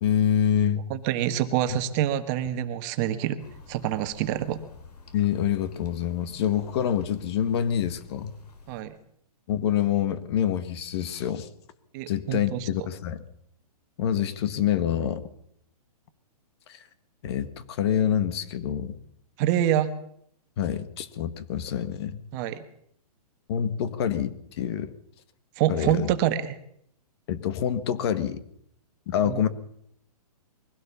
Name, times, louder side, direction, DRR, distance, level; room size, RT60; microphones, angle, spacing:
voice 1, 0.0-0.9 5.1-8.3 9.5-11.5 12.1-13.2 14.0-15.2 16.7-16.8 17.2-18.9 20.6-22.2 23.5-24.9 25.7-26.1 27.3-28.4 29.1-29.5, left 9 dB, 40° left, 13 dB, 1.6 m, -26 dB
voice 2, 0.9-3.4 3.7-4.6 8.7-8.9 11.9-12.7 19.4-19.9 22.3-22.6 25.6-26.6 29.2-29.4, right 11 dB, 30° right, 9 dB, 1.4 m, -26 dB
sound 1, 3.4-8.8, left 4 dB, 80° left, 4.7 m, -50 dB
22.5 x 16.5 x 7.1 m, 0.69 s
hypercardioid pair, 155°, 20 cm